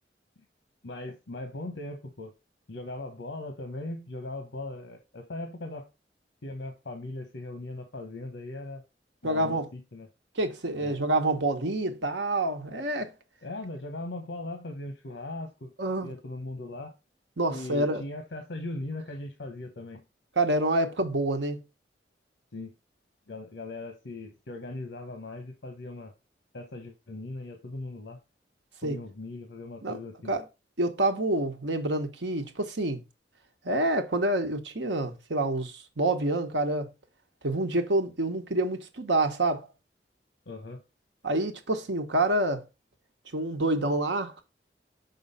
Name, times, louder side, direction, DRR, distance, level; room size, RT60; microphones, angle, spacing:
voice 1, 0.8-2.3 2.7-5.9 6.4-8.8 9.2-10.1 10.8-11.0 13.4-15.7 16.0-16.9 17.5-20.0 22.5-22.7 23.3-26.1 26.5-28.2 28.8-30.3 40.5-40.8, left 2 dB, 80° left, 0.9 m, -39 dB
voice 2, 9.2-9.7 10.4-13.1 15.8-16.1 17.4-18.0 20.4-21.6 28.8-29.0 29.8-30.0 30.3-30.4 30.8-33.0 33.6-36.9 37.4-39.7 41.2-42.6 43.3-44.4, right 2 dB, 90° right, 1.2 m, -27 dB
6.1 x 3.9 x 5.4 m
head